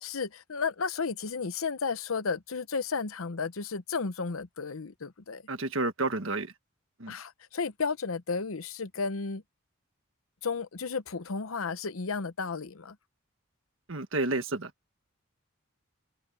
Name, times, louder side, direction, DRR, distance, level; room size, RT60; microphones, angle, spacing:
voice 1, 0.0-5.4 7.1-9.4 10.4-13.0, left 5 dB, 85° left, 0.9 m, -33 dB
voice 2, 5.5-6.5 7.0-7.1 13.9-14.7, right 2 dB, 70° right, 1.7 m, -30 dB
open air
head